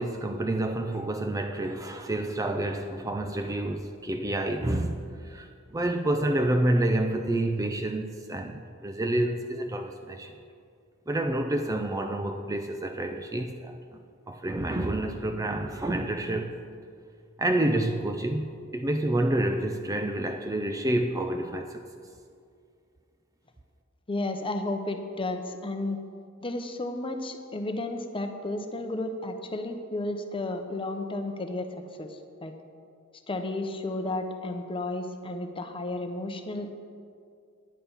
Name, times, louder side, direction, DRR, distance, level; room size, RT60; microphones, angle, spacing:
voice 1, 0.0-10.4 11.1-14.0 14.3-16.6 17.4-21.8, right 1 dB, 15° right, 5 dB, 0.4 m, -28 dB
voice 2, 24.1-26.0 26.4-31.7 32.0-32.5 33.3-36.7, left 2 dB, 25° left, 6 dB, 0.8 m, -32 dB
10.0 x 9.1 x 5.7 m, 2.3 s
head